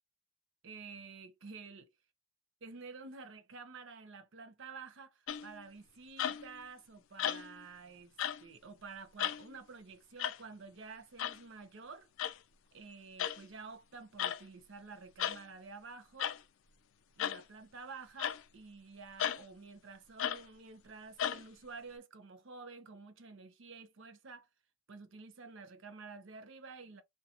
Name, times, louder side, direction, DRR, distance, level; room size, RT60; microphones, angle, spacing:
voice 1, 0.6-1.9 2.6-8.2 8.4-12.1 12.7-16.4 17.2-24.5 24.9-27.0, right 4 dB, 60° right, 0.5 m, -50 dB
sound 1, 5.3-5.6 6.2-6.6 7.2-7.6 8.2-8.4 9.2-9.5 10.2-10.4 11.2-11.4 12.2-12.4 13.2-13.4 14.2-14.4 15.2-15.4 16.2-16.4 17.2-17.4 18.2-18.4 19.2-19.4 20.2-20.5 21.2-21.4, left 10 dB, 65° left, 0.3 m, -35 dB
2.8 x 2.2 x 2.4 m
head